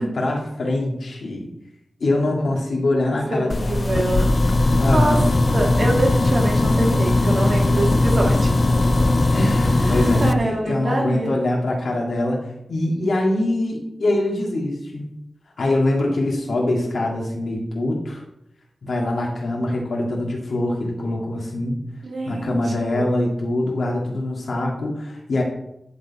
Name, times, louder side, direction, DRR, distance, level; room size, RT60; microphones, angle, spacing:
voice 1, 0.0-1.5 2.0-3.7 4.8-5.2 9.3-12.4 12.7-15.1 15.6-18.2 18.8-21.8 22.3-25.4, left 1 dB, 85° left, -2 dB, 2.1 m, -23 dB
voice 2, 3.3-4.4 4.8-5.2 5.5-8.7 9.8-11.3 22.0-23.1, right 1 dB, 60° right, -1 dB, 1.9 m, -25 dB
sound 1, 3.5-10.3, left 2 dB, 45° left, 0.4 m, -19 dB
10.5 x 3.9 x 4.2 m, 0.80 s
wide cardioid pair, 70°, 0 cm